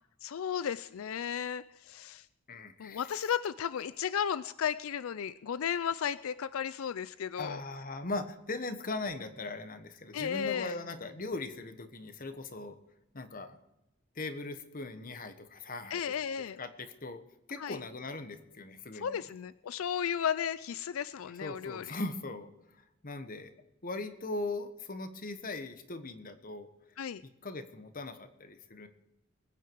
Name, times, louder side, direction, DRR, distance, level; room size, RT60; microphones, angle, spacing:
voice 1, 0.2-2.3 2.8-7.6 10.1-10.7 15.9-16.6 17.6-17.8 19.0-21.9 27.0-27.2, left 8 dB, 90° left, 16 dB, 0.4 m, -34 dB
voice 2, 2.5-3.0 7.4-12.8 13.1-13.6 14.1-16.1 16.6-17.2 17.5-19.2 21.3-22.5 23.0-23.5 23.8-26.7 27.2-28.9, left 2 dB, 45° left, 10 dB, 1.2 m, -39 dB
21.0 x 9.4 x 4.7 m, 0.95 s
head